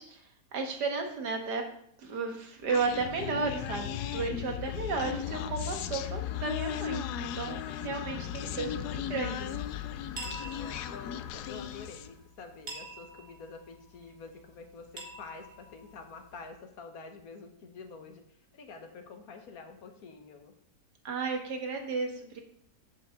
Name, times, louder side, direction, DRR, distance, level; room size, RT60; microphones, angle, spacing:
voice 1, 0.0-1.6 2.0-9.6 21.0-22.4, right 4 dB, 80° right, 3 dB, 1.9 m, -34 dB
Human voice, 2.7-12.2, left 10 dB, 80° left, 1.1 m, -36 dB
voice 2, 4.2-4.7 10.1-18.2 18.5-20.5, left 4 dB, 65° left, 5 dB, 1.6 m, -48 dB
sound 1, 9.3-16.5, right 1 dB, 55° right, 2.1 m, -48 dB
7.6 x 5.8 x 6.5 m, 0.67 s
omnidirectional pair, 1.7 m